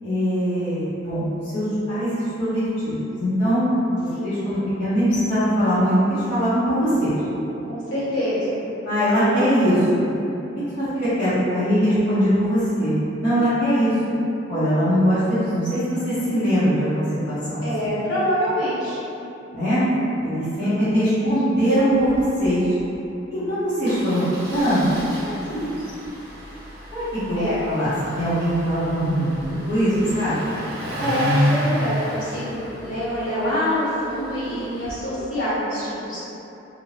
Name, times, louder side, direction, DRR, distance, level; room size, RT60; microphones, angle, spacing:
voice 1, 0.0-3.7 3.9-7.1 8.8-10.1 10.8-13.9 14.5-17.7 19.5-19.8 20.2-22.7 23.3-24.2 24.5-24.9 25.2-25.7 26.9-29.3 29.7-30.4, equal, 55° left, -17 dB, 0.9 m, -21 dB
voice 2, 7.7-8.6 17.6-19.0 20.6-21.2 27.4-27.6 30.0-30.5 31.0-36.3, equal, 75° left, -13 dB, 1.3 m, -26 dB
Engine starting, 22.0-22.2 22.4-22.5 22.8-23.0 23.9-34.9, equal, 55° right, 0.6 m, -31 dB
2.5 x 2.1 x 3.2 m, 3.0 s
head